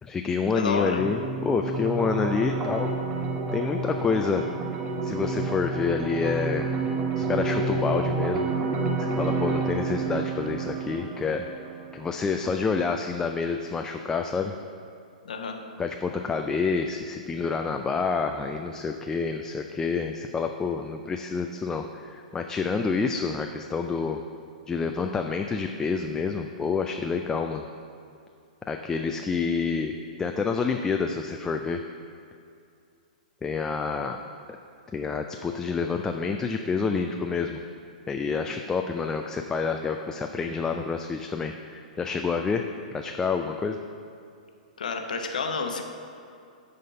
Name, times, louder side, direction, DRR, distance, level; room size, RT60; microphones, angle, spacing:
voice 1, 0.0-2.9 3.5-4.4 5.0-6.7 7.2-8.5 9.0-11.4 11.9-14.5 15.8-24.2 24.7-27.6 28.7-29.9 30.2-31.8 33.4-34.2 34.9-37.6 38.1-42.6 42.9-43.8, left 5 dB, 15° left, 4 dB, 0.3 m, -28 dB
voice 2, 0.5-1.1 15.2-15.6 44.8-45.8, left 4 dB, 70° left, 4 dB, 0.8 m, -29 dB
sound 1, 1.0-12.0, right 3 dB, 25° right, 0.7 m, -29 dB
9.0 x 4.0 x 5.4 m, 2.4 s
figure-of-eight pair, 110°, 4 cm